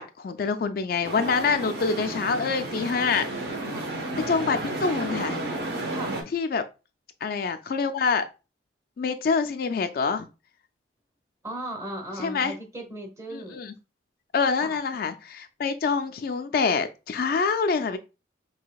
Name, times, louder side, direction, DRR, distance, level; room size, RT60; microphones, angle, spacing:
voice 1, 0.0-3.3 4.3-5.4 6.3-6.6 7.2-8.3 9.0-10.3 12.2-12.5 13.3-13.7 14.3-18.0, left 5 dB, 50° left, 0.3 m, -26 dB
sound 1, 1.0-6.2, right 2 dB, 55° right, 0.9 m, -32 dB
voice 2, 3.6-3.9 5.9-6.2 11.4-13.6 14.6-14.8, right 1 dB, 15° right, 0.9 m, -37 dB
5.7 x 2.7 x 2.3 m
head